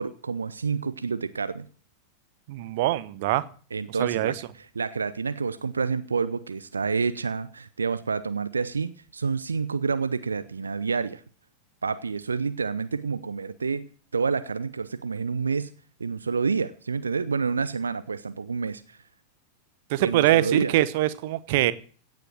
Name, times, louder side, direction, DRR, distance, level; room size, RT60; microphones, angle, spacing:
voice 1, 0.0-1.7 3.7-11.2 11.8-15.7 16.0-19.0 20.0-20.7, right 5 dB, 75° right, 14 dB, 0.7 m, -28 dB
voice 2, 2.5-3.4 3.9-4.4 19.9-21.7, right 15 dB, 50° right, 16 dB, 0.9 m, -23 dB
16.5 x 7.7 x 7.4 m, 0.43 s
figure-of-eight pair, 90°, 0 cm